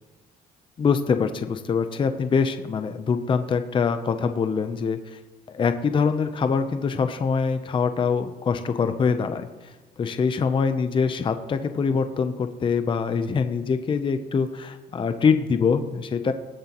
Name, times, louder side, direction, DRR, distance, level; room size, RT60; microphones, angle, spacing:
voice 1, 0.8-5.2 5.5-16.3, left 5 dB, 30° left, 9 dB, 0.6 m, -24 dB
19.5 x 7.6 x 3.0 m, 1.2 s
cardioid pair, 110°, 17 cm